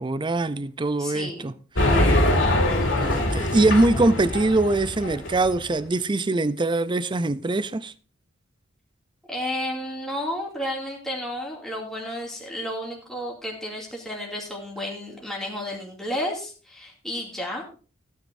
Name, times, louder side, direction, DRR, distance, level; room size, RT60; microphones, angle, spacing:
voice 1, 0.0-1.5 1.8-2.2 3.0-7.9, right 2 dB, 25° right, 0.5 m, -23 dB
voice 2, 1.0-1.5 9.3-17.6, left 1 dB, ahead, 2.5 m, -32 dB
sound 1, 1.8-5.5, left 1 dB, 65° left, 2.9 m, -23 dB
16.0 x 9.3 x 2.6 m
head